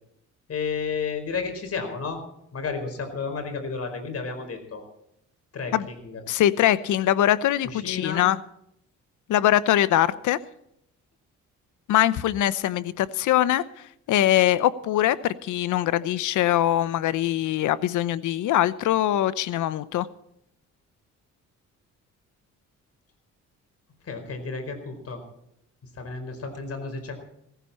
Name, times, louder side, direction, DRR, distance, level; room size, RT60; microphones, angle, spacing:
voice 1, 0.5-2.2 2.5-4.8 5.5-6.2 7.6-8.2 24.0-25.2 25.9-27.2, left 5 dB, 50° left, 6 dB, 4.9 m, -32 dB
voice 2, 6.3-8.4 9.3-10.4 11.9-20.1, left 12 dB, 80° left, 18 dB, 0.8 m, -22 dB
17.5 x 15.0 x 4.3 m, 0.77 s
cardioid pair, 90°, 30 cm